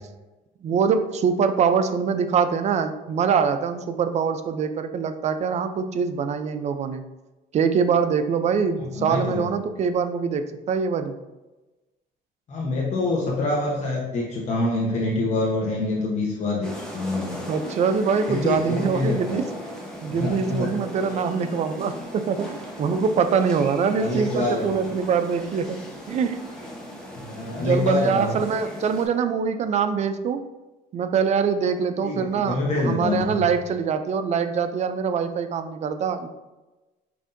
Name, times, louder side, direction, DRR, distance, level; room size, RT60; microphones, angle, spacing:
voice 1, 0.6-7.1 7.5-11.2 17.5-19.5 20.0-25.8 26.1-26.5 27.7-30.5 30.9-36.3, right 6 dB, 40° right, 9 dB, 0.4 m, -24 dB
voice 2, 8.8-9.4 12.5-17.5 18.3-19.4 20.2-20.7 24.0-24.7 27.2-28.4 32.0-33.4, left 2 dB, 45° left, -3 dB, 0.9 m, -26 dB
sound 1, 16.6-29.1, left 1 dB, 5° left, 0.9 m, -38 dB
5.7 x 2.6 x 2.6 m, 1.1 s
cardioid pair, 110°, 17 cm